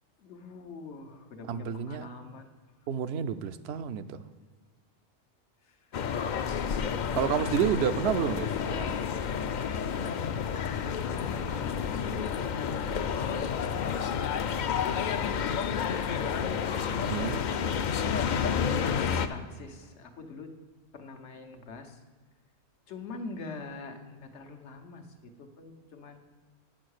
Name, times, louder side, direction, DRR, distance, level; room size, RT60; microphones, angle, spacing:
voice 1, 0.2-2.5 5.7-5.8 6.7-7.4 11.0-11.7 12.1-15.6 16.1-16.5 18.3-20.5 20.9-22.0 22.9-26.2, left 3 dB, 85° left, 6 dB, 1.3 m, -44 dB
voice 2, 1.5-2.1 2.9-4.2 7.1-9.0 17.1-17.5, right 8 dB, 70° right, 12 dB, 0.8 m, -30 dB
sound 1, 5.9-19.3, left 7 dB, 55° left, 0.5 m, -30 dB
8.5 x 6.3 x 6.4 m, 1.4 s
omnidirectional pair, 1.1 m